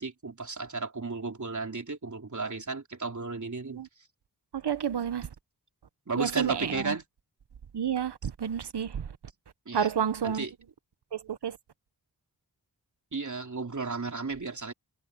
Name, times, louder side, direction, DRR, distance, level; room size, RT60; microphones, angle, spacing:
voice 1, 0.0-4.1 6.1-7.0 9.7-9.9 10.2-10.5 13.1-14.7, right 4 dB, 45° right, 3.4 m, -34 dB
voice 2, 4.5-5.3 6.2-7.0 7.7-9.2 9.7-10.5 11.1-11.6, right 8 dB, 85° right, 1.0 m, -30 dB
wide cardioid pair, 65°, 39 cm